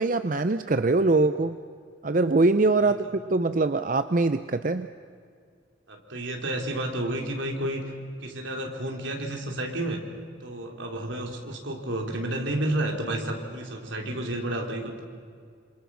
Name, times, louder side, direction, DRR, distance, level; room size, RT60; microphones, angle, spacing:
voice 1, 0.0-1.6 2.0-4.9, right 3 dB, 45° right, 10 dB, 0.6 m, -23 dB
voice 2, 5.9-7.8 8.2-10.0 10.4-15.0, right 1 dB, 80° right, 2 dB, 3.6 m, -31 dB
27.5 x 26.5 x 6.2 m, 2.2 s
head